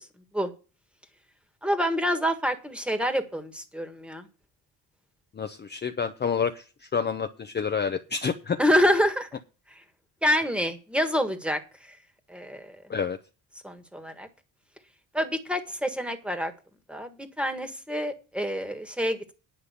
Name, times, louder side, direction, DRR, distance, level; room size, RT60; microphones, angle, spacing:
voice 1, 1.6-4.3 8.6-9.3 9.7-9.8 10.2-12.0 12.3-12.8 13.6-14.3 15.1-16.5 16.9-19.3, equal, 5° right, 7 dB, 1.6 m, -27 dB
voice 2, 5.3-6.6 6.9-8.6 12.9-13.2, left 6 dB, 25° left, 7 dB, 0.7 m, -28 dB
10.0 x 5.6 x 8.1 m, 0.33 s
cardioid pair, 125°, 40 cm